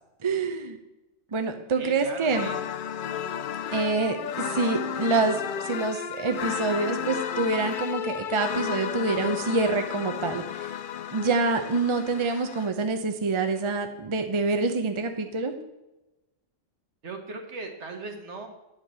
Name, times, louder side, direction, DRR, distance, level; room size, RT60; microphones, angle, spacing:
voice 1, 0.2-0.8 1.3-2.5 3.7-10.7 11.1-15.5, right 3 dB, 30° right, 6 dB, 0.7 m, -26 dB
voice 2, 1.8-2.6 17.0-18.5, right 3 dB, 65° right, 3 dB, 1.7 m, -38 dB
sound 1, 2.3-12.7, left 9 dB, 60° left, 0.5 m, -33 dB
9.9 x 5.2 x 7.5 m, 1.0 s
omnidirectional pair, 1.3 m